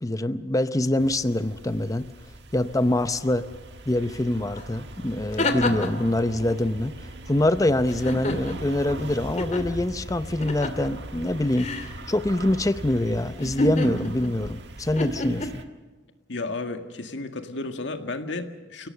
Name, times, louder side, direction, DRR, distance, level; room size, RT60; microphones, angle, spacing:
voice 1, 0.0-2.0 2.5-3.5 3.9-7.0 7.3-11.7 12.1-15.6, left 1 dB, 20° left, 12 dB, 0.7 m, -25 dB
sound 1, 1.0-15.6, right 1 dB, 65° right, 1.6 m, -40 dB
sound 2, 4.6-4.7 5.1-6.1 7.9-8.7 9.4-9.6 10.4-10.9 11.6-11.9 13.4-14.4 15.0-15.5, left 1 dB, 40° left, 2.3 m, -28 dB
voice 2, 16.3-18.9, left 3 dB, 80° left, 6 dB, 1.9 m, -33 dB
29.5 x 17.5 x 6.7 m, 1.3 s
head